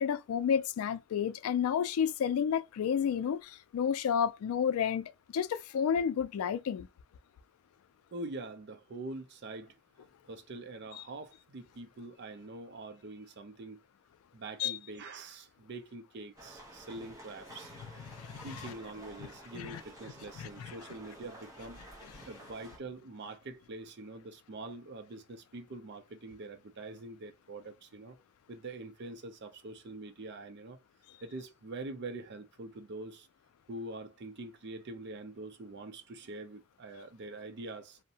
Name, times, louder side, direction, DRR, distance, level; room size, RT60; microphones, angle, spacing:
voice 1, 0.0-6.9 14.6-14.8 18.1-18.6 19.5-19.8 20.4-20.7 22.2-22.3, left 7 dB, 85° left, 0.3 m, -31 dB
voice 2, 8.1-13.8 14.3-17.7 18.4-21.8 22.3-28.2 28.5-30.8 31.2-33.3 33.7-38.0, right 2 dB, 55° right, 0.5 m, -44 dB
sound 1, 16.4-22.8, right 1 dB, 15° right, 0.7 m, -51 dB
2.6 x 2.1 x 2.7 m
head